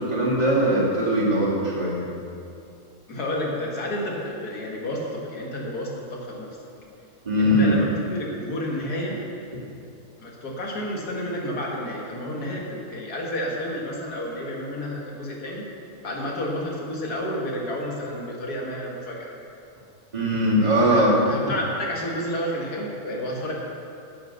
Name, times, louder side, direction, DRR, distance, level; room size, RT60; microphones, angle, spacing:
voice 1, 0.0-2.0 7.2-7.8 20.1-21.1, equal, 25° right, -7 dB, 2.7 m, -20 dB
voice 2, 3.1-6.5 7.4-9.2 10.2-15.6 16.0-19.2 20.8-23.5, left 1 dB, 85° left, -2 dB, 2.3 m, -30 dB
10.5 x 7.6 x 6.7 m, 2.6 s
omnidirectional pair, 1.6 m